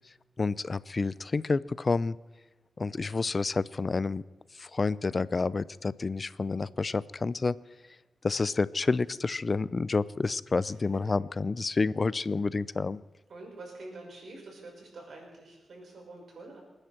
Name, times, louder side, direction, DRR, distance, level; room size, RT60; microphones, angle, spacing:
voice 1, 0.4-2.2 2.8-4.2 4.6-7.6 8.2-13.0, left 3 dB, 45° left, 19 dB, 0.5 m, -29 dB
voice 2, 13.3-16.6, right 2 dB, 70° right, -1 dB, 5.9 m, -46 dB
28.5 x 9.9 x 4.4 m, 1.1 s
cardioid pair, 60°, 0 cm